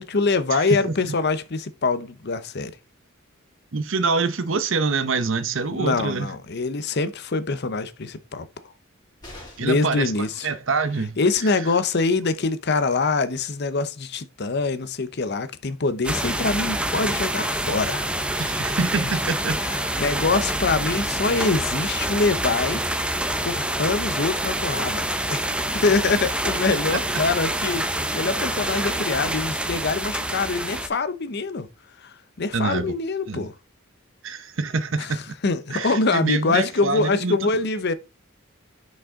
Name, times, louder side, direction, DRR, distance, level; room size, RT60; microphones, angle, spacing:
voice 1, 0.0-2.7 5.7-8.5 9.6-10.5 11.2-18.5 19.0-19.1 19.6-22.8 23.4-25.5 25.8-31.7 32.0-33.5 35.0-37.9, left 3 dB, 55° left, 0.7 m, -24 dB
voice 2, 3.7-6.3 9.6-11.1 18.4-19.6 26.7-27.2 32.5-32.9 33.3-33.5 34.2-35.3 35.7-37.5, right 4 dB, 65° right, 0.8 m, -26 dB
sound 1, 9.2-10.0 11.9-12.0 12.3-12.4, left 1 dB, 20° left, 3.8 m, -43 dB
sound 2, 16.0-30.9, right 1 dB, 5° right, 0.6 m, -26 dB
6.2 x 5.5 x 3.7 m
head